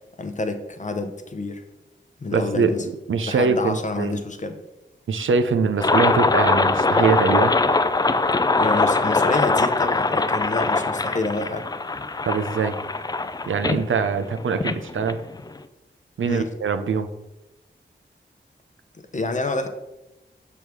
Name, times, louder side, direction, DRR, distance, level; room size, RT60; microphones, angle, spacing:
voice 1, 0.2-1.6 2.2-2.8 3.3-4.6 8.6-11.7 16.2-16.5 19.1-19.7, left 2 dB, 40° left, 7 dB, 0.7 m, -28 dB
voice 2, 2.3-2.7 3.1-4.2 5.1-7.5 12.2-12.8 13.5-15.2 16.2-17.1, right 5 dB, 85° right, 8 dB, 0.6 m, -23 dB
sound 1, 5.8-15.6, left 3 dB, 20° left, 0.3 m, -22 dB
6.3 x 3.5 x 6.0 m, 0.98 s
wide cardioid pair, 100°, 20 cm